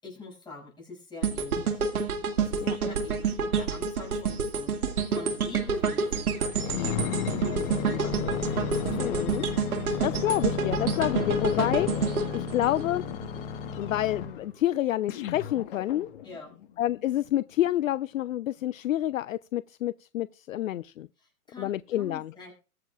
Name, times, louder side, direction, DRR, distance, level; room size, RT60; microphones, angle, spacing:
voice 1, 0.0-1.9 2.4-6.4 6.7-9.7 16.2-16.5 21.2-22.5, left 3 dB, 10° left, 6.5 m, -45 dB
sound 1, 1.2-13.4 13.8-14.0, right 5 dB, 70° right, 2.1 m, -29 dB
sound 2, 6.5-14.5 15.1-16.4 17.0-17.1, left 7 dB, 35° left, 1.5 m, -33 dB
voice 2, 9.0-9.4 10.0-13.0 13.8-16.1 16.8-21.1 21.6-22.3, left 13 dB, 60° left, 0.5 m, -28 dB
22.5 x 7.6 x 2.4 m
hypercardioid pair, 130°, 45 cm